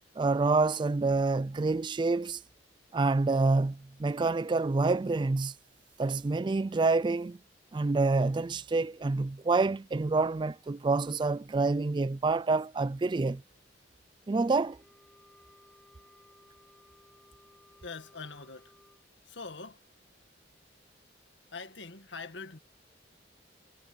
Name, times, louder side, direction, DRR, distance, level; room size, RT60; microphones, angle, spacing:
voice 1, 0.2-2.4 2.9-5.5 6.0-7.4 7.7-13.4 14.3-14.8, right 3 dB, 25° right, 0.3 m, -27 dB
Wind instrument woodwind instrument, 14.6-19.0, left 1 dB, 5° left, 1.4 m, -60 dB
voice 2, 17.8-18.7 19.2-19.9 21.5-22.6, left 4 dB, 70° left, 1.9 m, -43 dB
head